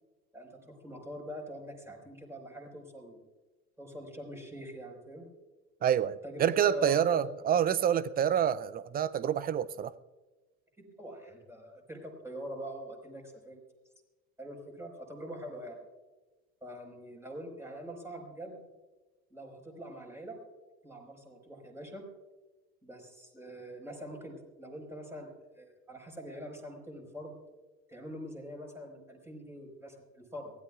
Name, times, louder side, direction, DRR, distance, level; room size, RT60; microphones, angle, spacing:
voice 1, 0.3-3.2 3.8-5.3 6.2-7.4 10.8-13.6 14.4-15.8 16.6-18.6 19.3-20.4 20.8-22.1 22.8-27.4 27.9-30.5, equal, 5° right, 4.7 m, -44 dB
voice 2, 5.8-9.9, right 9 dB, 20° right, 0.4 m, -27 dB
23.0 x 16.5 x 2.4 m
hypercardioid pair, 75°, 46 cm